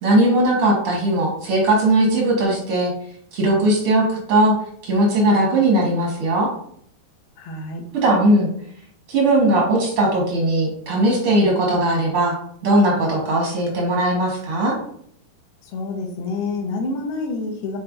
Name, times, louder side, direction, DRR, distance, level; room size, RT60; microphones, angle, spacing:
voice 1, 0.0-2.9 3.3-4.6 4.8-6.5 7.9-8.5 9.1-12.4 12.6-14.8, right 1 dB, 75° right, -2 dB, 1.2 m, -18 dB
voice 2, 7.4-7.8 15.6-17.8, left 3 dB, 75° left, 2 dB, 2.9 m, -28 dB
8.8 x 4.2 x 2.6 m, 0.64 s
omnidirectional pair, 4.6 m